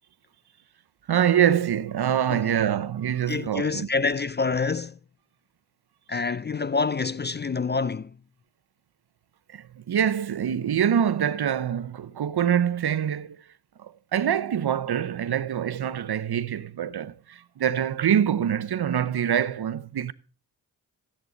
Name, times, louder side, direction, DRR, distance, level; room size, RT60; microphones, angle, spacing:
voice 1, 1.1-3.9 9.5-13.4 13.8-20.1, right 9 dB, 60° right, 0.8 m, -25 dB
voice 2, 3.3-5.0 6.1-8.2, left 4 dB, 25° left, 0.4 m, -27 dB
14.0 x 8.7 x 3.9 m
cardioid pair, 40°, 43 cm